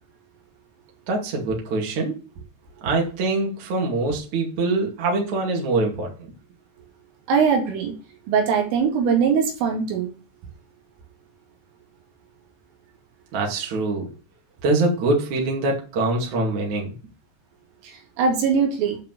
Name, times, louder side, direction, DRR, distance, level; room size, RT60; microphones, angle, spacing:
voice 1, 1.1-2.2 2.8-6.3 13.3-14.1 14.6-16.9, right 2 dB, 45° right, 0 dB, 3.0 m, -24 dB
voice 2, 7.3-7.9 8.3-10.1 17.8-19.0, right 6 dB, 75° right, 1 dB, 4.7 m, -21 dB
8.7 x 5.0 x 7.6 m, 0.33 s
omnidirectional pair, 5.8 m